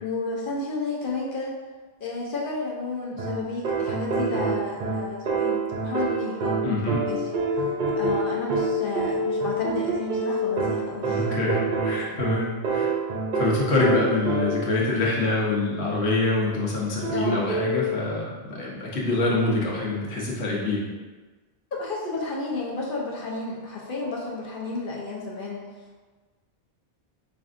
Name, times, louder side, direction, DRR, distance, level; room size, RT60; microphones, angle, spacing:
voice 1, 0.0-1.6 2.0-6.6 7.0-7.2 8.0-11.3 17.1-17.5 21.8-25.6, left 3 dB, 55° left, -4 dB, 0.8 m, -32 dB
sound 1, 3.2-14.8 17.0-17.9, right 2 dB, 50° right, 0.6 m, -27 dB
voice 2, 6.6-7.0 11.0-12.9 13.3-20.8, left 2 dB, 70° left, -4 dB, 1.1 m, -25 dB
5.1 x 2.6 x 2.5 m, 1.3 s
omnidirectional pair, 1.2 m